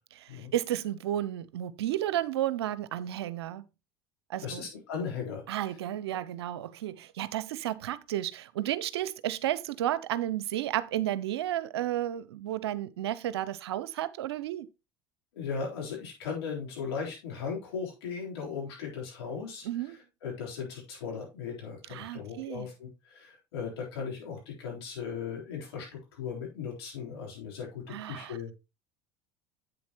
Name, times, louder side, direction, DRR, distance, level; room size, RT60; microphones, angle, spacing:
voice 1, 0.2-3.6 4.3-4.7 5.5-14.7 19.6-20.0 21.9-22.7 27.9-28.4, right 12 dB, 80° right, 0.6 m, -32 dB
voice 2, 4.4-5.8 15.3-28.5, left 6 dB, 80° left, 3.8 m, -37 dB
8.1 x 7.1 x 3.0 m
hypercardioid pair, 75°, 13 cm